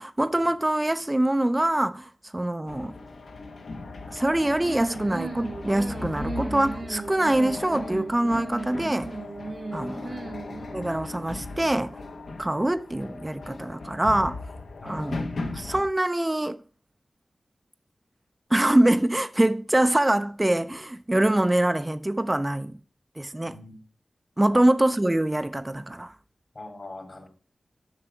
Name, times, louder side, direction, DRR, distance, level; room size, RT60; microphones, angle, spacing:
voice 1, 0.0-2.9 4.1-9.1 9.7-10.2 10.7-12.0 12.4-14.4 14.8-16.6 18.5-22.8 23.2-23.6 24.4-26.1, right 1 dB, 20° right, 0.3 m, -24 dB
sound 1, 2.7-15.8, left 3 dB, 85° left, 0.9 m, -38 dB
sound 2, 4.6-11.0, right 3 dB, 50° right, 0.7 m, -37 dB
voice 2, 26.5-27.3, left 2 dB, 55° left, 2.6 m, -42 dB
7.5 x 5.9 x 4.4 m
wide cardioid pair, 65°, 0 cm